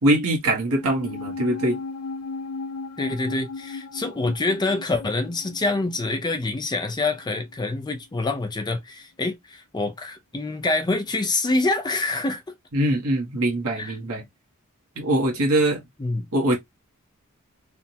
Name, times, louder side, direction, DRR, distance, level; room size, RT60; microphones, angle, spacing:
voice 1, 0.0-1.8 12.7-14.2 15.0-15.8 16.3-16.6, right 1 dB, 80° right, 1.0 m, -22 dB
sound 1, 0.7-7.3 7.5-7.6, left 4 dB, 80° left, 0.4 m, -36 dB
voice 2, 3.0-12.4 13.8-13.9 16.0-16.3, left 2 dB, 20° left, 0.4 m, -26 dB
3.3 x 2.1 x 2.7 m
head